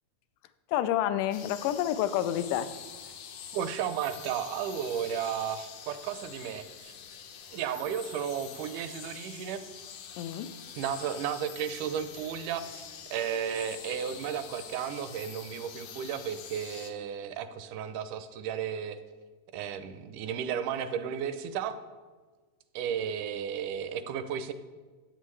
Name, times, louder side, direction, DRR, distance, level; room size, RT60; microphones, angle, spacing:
voice 1, 0.7-2.7 10.2-10.5, left 11 dB, 90° left, 12 dB, 2.2 m, -29 dB
sound 1, 1.3-16.9, left 8 dB, 70° left, 1.8 m, -46 dB
voice 2, 3.5-6.9 7.5-9.7 10.8-12.9 13.1-19.0 19.5-21.8 22.8-24.5, right 8 dB, 80° right, 11 dB, 2.1 m, -34 dB
13.0 x 8.8 x 3.2 m, 1.4 s
omnidirectional pair, 3.7 m